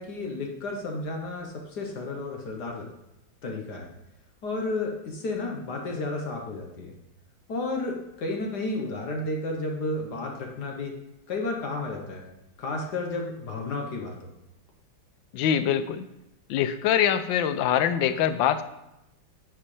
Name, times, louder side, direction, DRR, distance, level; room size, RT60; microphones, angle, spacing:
voice 1, 0.0-2.9 3.4-3.9 4.4-6.9 7.5-10.9 11.3-12.2 12.6-14.3, left 2 dB, 60° left, 1 dB, 1.6 m, -32 dB
voice 2, 15.3-16.0 16.5-18.6, left 9 dB, 80° left, 12 dB, 1.4 m, -24 dB
9.8 x 8.2 x 3.3 m, 0.91 s
omnidirectional pair, 2.1 m